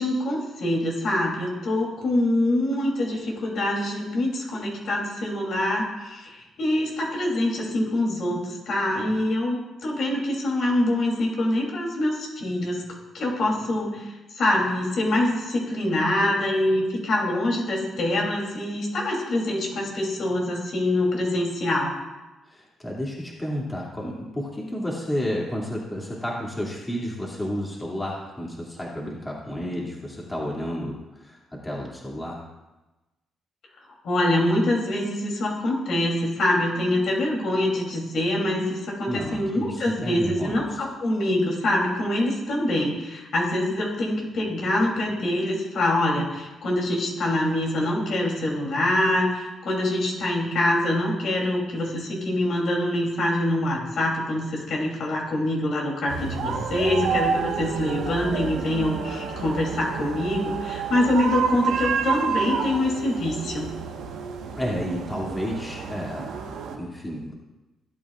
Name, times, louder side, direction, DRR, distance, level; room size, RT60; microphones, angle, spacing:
voice 1, 0.0-12.8 13.1-21.9 34.0-63.7, left 1 dB, 65° left, -1 dB, 3.1 m, -25 dB
voice 2, 22.5-32.4 39.1-40.8 64.5-67.3, equal, 15° left, -4 dB, 2.5 m, -31 dB
sound 1, 56.1-66.8, right 6 dB, 90° right, 1.3 m, -29 dB
17.0 x 8.7 x 2.5 m, 1.1 s
cardioid pair, 90°, 0 cm